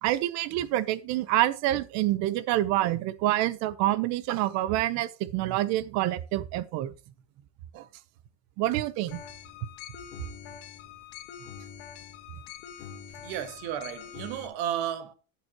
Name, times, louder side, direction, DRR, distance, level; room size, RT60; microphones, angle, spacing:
voice 1, 0.0-6.9 7.7-7.8 8.6-9.2, right 14 dB, 60° right, 0.9 m, -27 dB
sound 1, 9.1-14.5, left 8 dB, 85° left, 1.7 m, -44 dB
voice 2, 13.2-15.1, right 10 dB, 85° right, 1.7 m, -33 dB
13.5 x 7.2 x 3.0 m
cardioid pair, 175°, 32 cm